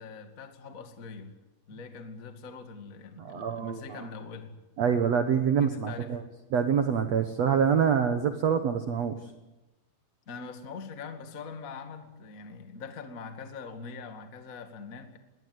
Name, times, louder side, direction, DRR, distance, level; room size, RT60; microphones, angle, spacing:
voice 1, 0.0-1.4 1.7-4.5 5.6-6.2 10.2-15.2, left 5 dB, 35° left, 7 dB, 1.4 m, -43 dB
voice 2, 3.2-4.0 4.8-6.2 6.5-9.2, right 7 dB, 80° right, 7 dB, 1.4 m, -26 dB
21.0 x 20.0 x 9.5 m, 1.0 s
omnidirectional pair, 5.0 m